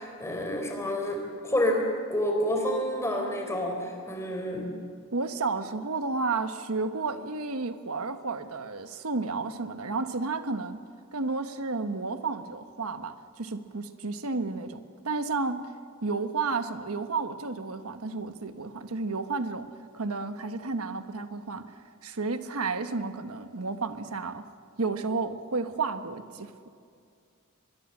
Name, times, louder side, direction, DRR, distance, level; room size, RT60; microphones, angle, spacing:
voice 1, 0.0-4.7, left 1 dB, 15° left, 3 dB, 3.9 m, -29 dB
voice 2, 5.1-10.8 11.1-15.7 16.0-21.7 22.0-24.5 24.8-26.7, right 3 dB, 90° right, 9 dB, 1.3 m, -32 dB
24.5 x 21.5 x 7.5 m, 2.3 s
head